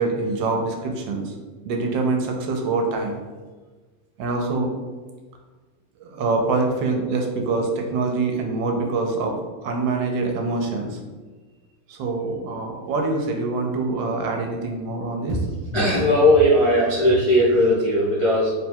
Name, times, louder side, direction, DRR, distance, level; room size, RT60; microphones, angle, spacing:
voice 1, 0.0-1.3 1.6-3.2 4.2-4.7 6.0-9.4 9.6-11.0 11.9-15.4, right 3 dB, 80° right, 2 dB, 1.3 m, -25 dB
voice 2, 15.7-18.5, equal, 55° left, -9 dB, 0.3 m, -18 dB
3.5 x 2.2 x 4.3 m, 1.3 s
omnidirectional pair, 2.1 m